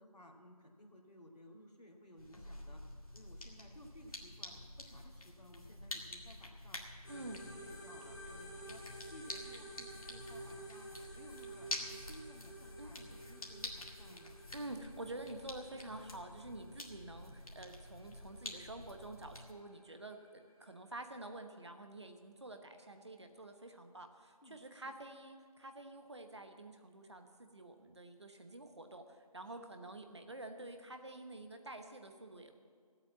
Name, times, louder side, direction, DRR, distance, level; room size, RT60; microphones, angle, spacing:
voice 1, 0.0-2.8 3.1-6.8 7.1-8.8 9.1-13.0 13.2-14.8 24.4-24.9 29.5-29.9, equal, 80° left, 0 dB, 2.5 m, -58 dB
sound 1, 2.2-19.5, left 1 dB, 60° left, 2.0 m, -49 dB
sound 2, 7.0-20.8, right 1 dB, 25° left, 1.6 m, -53 dB
voice 2, 7.1-7.4 12.8-13.2 14.5-32.5, right 2 dB, 45° right, 6 dB, 1.1 m, -49 dB
15.5 x 8.5 x 7.3 m, 2.1 s
figure-of-eight pair, 170°, 20 cm